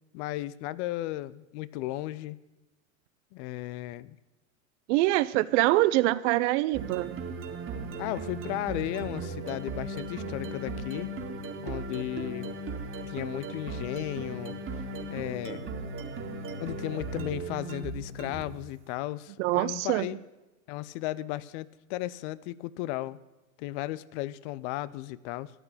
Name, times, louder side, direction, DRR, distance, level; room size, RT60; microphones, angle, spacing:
voice 1, 0.1-2.4 3.3-4.2 8.0-11.1 11.6-12.5 13.1-14.5 15.1-15.6 16.6-20.2 20.7-23.2 23.6-25.5, left 16 dB, 55° left, 19 dB, 0.7 m, -35 dB
voice 2, 4.9-7.1 19.4-20.1, right 18 dB, 55° right, 17 dB, 0.7 m, -24 dB
sound 1, 6.7-18.7, right 3 dB, 30° right, 2.1 m, -37 dB
13.5 x 8.8 x 8.6 m, 1.1 s
hypercardioid pair, 90°, 41 cm